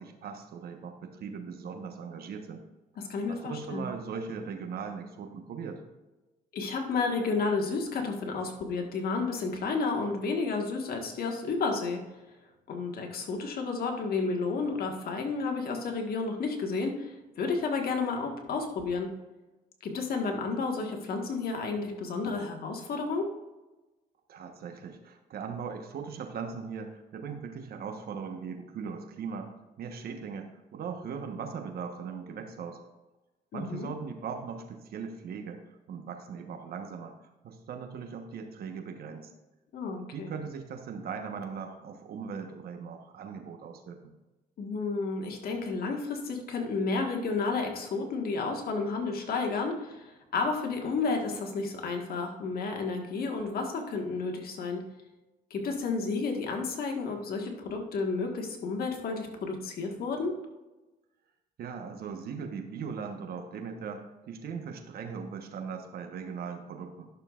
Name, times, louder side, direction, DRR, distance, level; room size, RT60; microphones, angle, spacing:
voice 1, 0.0-2.6 3.3-5.8 24.3-29.5 29.8-32.8 33.5-37.1 37.4-39.3 40.1-44.1 61.6-67.1, right 6 dB, 60° right, 5 dB, 1.2 m, -39 dB
voice 2, 3.0-3.9 6.5-12.0 12.7-19.1 19.8-23.3 33.5-33.9 39.7-40.3 44.6-54.8 55.5-60.4, left 4 dB, 60° left, 3 dB, 1.6 m, -31 dB
11.5 x 6.5 x 2.5 m, 1.1 s
supercardioid pair, 80°, 18 cm